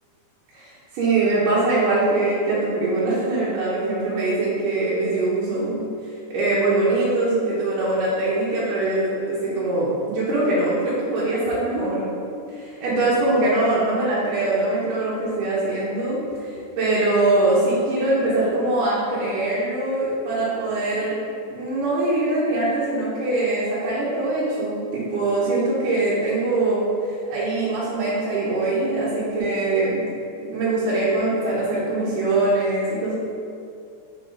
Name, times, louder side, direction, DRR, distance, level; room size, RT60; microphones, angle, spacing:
voice 1, 0.5-5.8 6.3-21.1 21.5-30.0 30.4-33.1, right 2 dB, 90° right, -9 dB, 2.6 m, -22 dB
6.5 x 4.2 x 3.8 m, 2.4 s
omnidirectional pair, 3.6 m